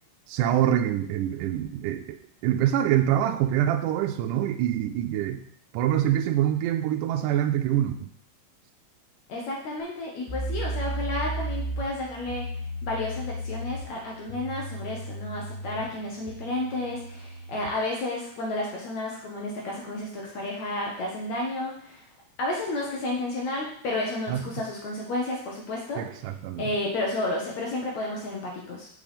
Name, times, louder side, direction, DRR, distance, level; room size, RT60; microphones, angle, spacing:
voice 1, 0.3-2.2 2.4-5.4 5.7-8.1 24.3-24.4 26.0-26.6, right 11 dB, 80° right, 5 dB, 2.0 m, -25 dB
voice 2, 9.3-12.5 12.8-22.1 22.4-26.3 26.6-28.9, left 2 dB, 65° left, -2 dB, 2.2 m, -31 dB
sound 1, 10.3-17.8, right 1 dB, 85° left, 3.1 m, -35 dB
7.8 x 4.8 x 5.1 m, 0.65 s
omnidirectional pair, 3.8 m